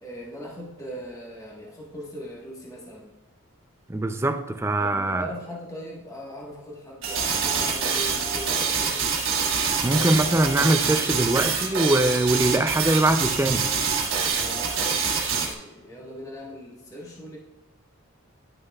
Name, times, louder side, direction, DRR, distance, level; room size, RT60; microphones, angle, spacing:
voice 1, 0.0-3.1 4.8-9.0 14.0-17.4, equal, 15° left, 1.3 m, -40 dB
voice 2, 3.9-5.3 9.8-13.8, right 1 dB, 10° right, 0.4 m, -22 dB
sound 1, 7.0-15.5, right 5 dB, 65° right, 1.4 m, -25 dB
11.0 x 6.5 x 2.3 m
head